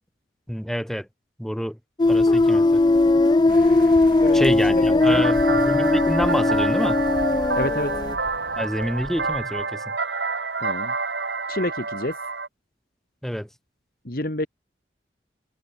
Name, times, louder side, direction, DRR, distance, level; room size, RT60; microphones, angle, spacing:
voice 1, 0.5-1.1 1.4-1.8 2.1-2.8 4.3-7.0 8.6-9.8 13.2-13.5, equal, ahead, 5.6 m, -27 dB
sound 1, 2.0-8.2, left 2 dB, 25° left, 0.3 m, -19 dB
Bird, 3.5-9.6, right 1 dB, 50° right, 5.6 m, -40 dB
voice 2, 4.2-5.2 7.6-7.9 10.6-10.9 11.5-12.1 14.1-14.5, left 1 dB, 55° left, 2.1 m, -28 dB
sound 2, 5.0-12.5, right 4 dB, 75° right, 3.7 m, -28 dB
head